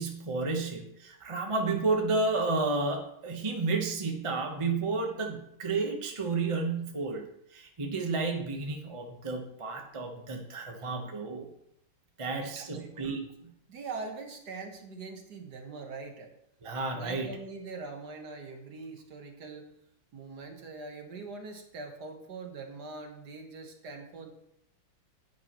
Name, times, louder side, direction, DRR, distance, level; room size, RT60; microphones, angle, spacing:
voice 1, 0.0-11.5 12.2-13.3 16.6-17.3, right 3 dB, 25° right, 2 dB, 0.8 m, -31 dB
voice 2, 12.3-13.1 13.7-16.3 16.9-19.7 20.1-24.3, right 3 dB, 55° right, 3 dB, 1.8 m, -42 dB
10.5 x 9.5 x 3.0 m, 0.77 s
omnidirectional pair, 2.1 m